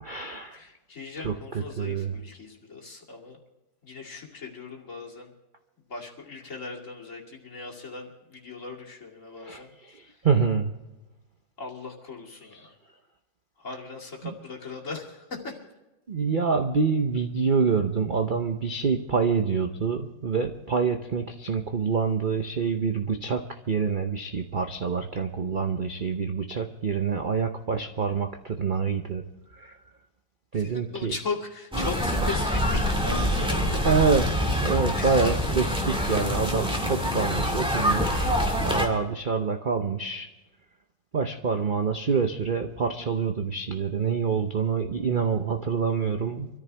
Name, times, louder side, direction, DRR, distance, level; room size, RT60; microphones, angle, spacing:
voice 1, 0.0-0.6 1.2-1.3 1.8-2.1 9.4-9.6 10.2-10.8 16.1-29.2 29.6-29.7 30.5-31.1 33.8-38.3 38.6-40.3 41.1-46.5, right 5 dB, 60° right, 5 dB, 0.5 m, -26 dB
voice 2, 0.5-3.4 3.8-5.3 5.9-9.7 10.1-10.2 11.6-12.7 13.6-15.6 30.5-33.9 34.5-35.5, left 4 dB, 40° left, -1 dB, 2.8 m, -38 dB
sound 1, 31.7-38.9, equal, 5° right, 1.9 m, -25 dB
25.0 x 14.0 x 3.4 m, 1.0 s
omnidirectional pair, 2.1 m